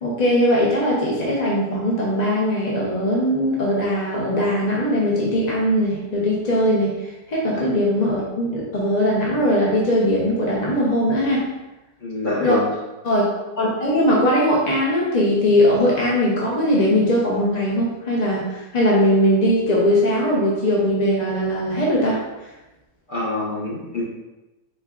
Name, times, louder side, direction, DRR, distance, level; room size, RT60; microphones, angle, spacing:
voice 1, 0.0-11.5 12.4-12.6 13.0-22.2, equal, 50° left, -4 dB, 0.4 m, -20 dB
voice 2, 12.0-12.7 23.1-24.0, left 2 dB, 35° left, -6 dB, 1.1 m, -25 dB
4.4 x 3.9 x 2.4 m, 1.0 s
omnidirectional pair, 1.8 m